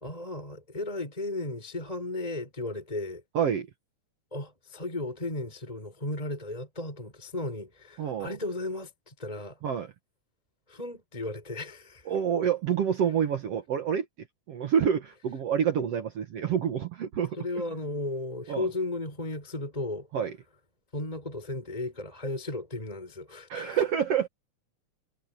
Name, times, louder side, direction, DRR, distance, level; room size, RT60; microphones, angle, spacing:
voice 1, 0.0-3.2 4.3-9.6 10.7-12.1 17.4-20.1 20.9-23.8, left 2 dB, 10° left, 4.3 m, -35 dB
voice 2, 3.3-3.7 8.0-8.3 9.6-9.9 12.1-14.1 14.5-17.4 18.5-18.7 20.1-20.3 23.5-24.3, right 8 dB, 55° right, 2.1 m, -27 dB
omnidirectional pair, 3.7 m